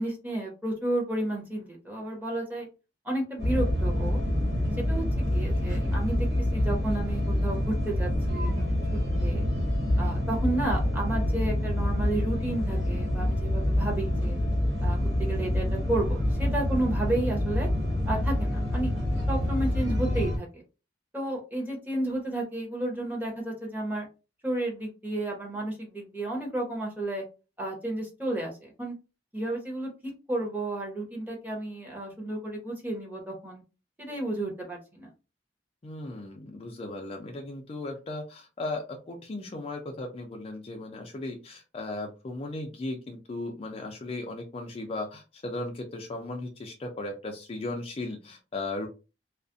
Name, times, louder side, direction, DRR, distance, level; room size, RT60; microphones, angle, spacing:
voice 1, 0.0-2.7 3.0-4.2 4.9-6.3 6.5-9.4 10.0-14.4 14.8-17.7 18.1-18.9 19.3-20.6 21.1-24.1 24.4-27.2 27.6-28.9 29.3-33.6 34.0-35.1, right 1 dB, 10° right, -1 dB, 0.8 m, -32 dB
sound 1, 3.4-20.4, left 1 dB, 90° right, 1.1 m, -27 dB
voice 2, 35.8-48.9, left 2 dB, 35° left, 3 dB, 0.4 m, -36 dB
2.4 x 2.0 x 2.5 m, 0.30 s
head